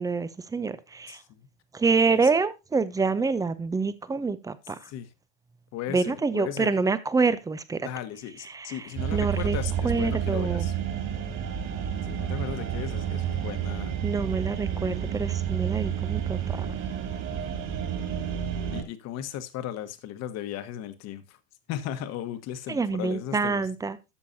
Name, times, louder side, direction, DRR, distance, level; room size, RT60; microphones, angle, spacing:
voice 1, 0.0-1.2 1.7-4.8 5.9-7.9 8.5-9.6 9.8-10.7 14.0-16.8 22.7-24.0, right 4 dB, 10° right, 0.6 m, -27 dB
voice 2, 1.1-1.5 2.1-2.3 4.9-5.1 5.7-6.7 7.8-10.7 12.1-13.9 17.3-17.6 18.7-21.4 21.7-23.6, left 11 dB, 40° left, 1.4 m, -36 dB
sound 1, 9.0-18.8, right 9 dB, 40° right, 3.0 m, -30 dB
12.5 x 6.8 x 2.8 m
hypercardioid pair, 105°, 40 cm